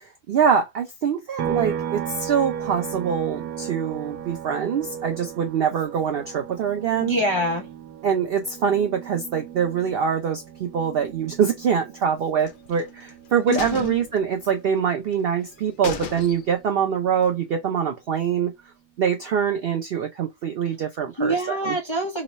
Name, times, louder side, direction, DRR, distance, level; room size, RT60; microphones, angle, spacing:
voice 1, 0.3-7.1 8.0-18.5 19.0-21.7, right 7 dB, 65° right, 0.5 m, -24 dB
sound 1, 1.4-14.9 15.3-17.5, right 9 dB, 85° right, 1.1 m, -36 dB
voice 2, 7.0-7.7 13.5-13.9 21.2-22.2, equal, 30° left, 0.6 m, -25 dB
sound 2, 12.4-13.1 13.5-14.8 15.1-15.2 15.5-15.6 15.8-16.7 17.1-17.2, left 6 dB, 80° left, 0.4 m, -36 dB
3.0 x 2.0 x 3.9 m
omnidirectional pair, 1.5 m